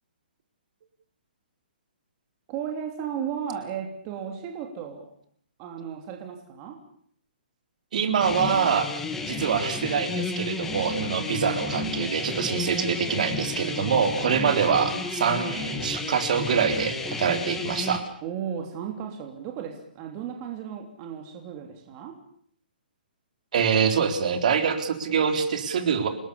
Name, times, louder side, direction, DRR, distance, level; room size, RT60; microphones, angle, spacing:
voice 1, 2.5-5.1 5.6-6.8 14.2-14.7 18.2-22.2, right 8 dB, 20° right, 3 dB, 3.1 m, -35 dB
voice 2, 7.9-8.9 9.3-16.9 17.2-18.0 23.5-26.1, right 6 dB, 50° right, 7 dB, 4.0 m, -25 dB
sound 1, 8.2-18.0, left 3 dB, 5° left, 2.1 m, -32 dB
29.5 x 20.0 x 7.1 m, 0.62 s
hypercardioid pair, 170°, 5 cm